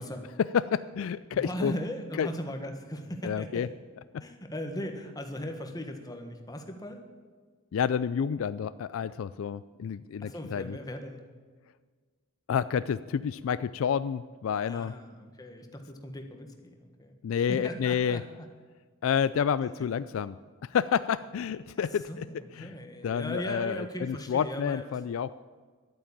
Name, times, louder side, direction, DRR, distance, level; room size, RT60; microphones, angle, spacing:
voice 1, 0.4-1.7 2.1-2.3 3.2-3.7 4.1-4.2 7.7-10.8 12.5-14.9 17.2-18.2 19.0-20.4 20.6-22.3 22.6-22.7 23.0-25.4, left 7 dB, 65° left, 15 dB, 0.3 m, -29 dB
voice 2, 1.4-3.7 4.2-7.0 10.2-11.2 14.7-18.5 21.8-24.8, equal, 20° left, 4 dB, 1.4 m, -38 dB
11.5 x 9.0 x 8.6 m, 1.5 s
head